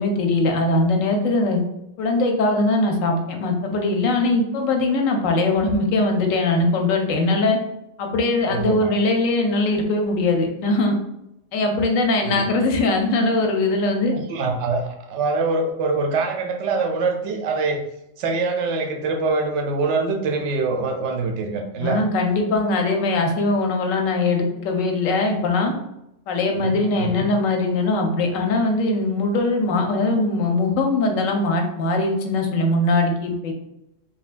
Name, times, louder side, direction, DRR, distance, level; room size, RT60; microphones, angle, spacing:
voice 1, 0.0-1.6 2.0-7.6 8.0-11.0 11.5-14.1 21.8-25.7 26.3-33.5, left 2 dB, 85° left, 3 dB, 1.0 m, -21 dB
voice 2, 8.5-8.9 12.2-12.5 14.1-17.8 18.2-22.0 26.5-27.3, right 3 dB, 70° right, 4 dB, 0.8 m, -24 dB
3.8 x 2.2 x 2.4 m, 0.86 s
omnidirectional pair, 1.3 m